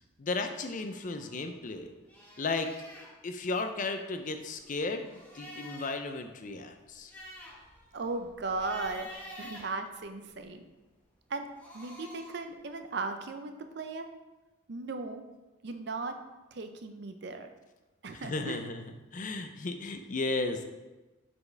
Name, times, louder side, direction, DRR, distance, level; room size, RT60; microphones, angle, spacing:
voice 1, 0.2-1.9 2.4-2.7 3.2-7.1 18.1-20.6, left 3 dB, 40° left, 7 dB, 0.4 m, -34 dB
sound 1, 0.6-1.8 2.1-3.1 3.9-6.1 6.4-6.5 6.9-10.4 11.4-12.5, left 1 dB, 10° left, 0.9 m, -49 dB
voice 2, 7.9-9.1 9.4-10.6 11.3-11.5 11.7-14.1 14.7-15.2 15.6-16.1 16.5-17.5 18.0-18.6, right 3 dB, 55° right, 7 dB, 0.5 m, -37 dB
6.9 x 4.4 x 3.2 m, 1.1 s
head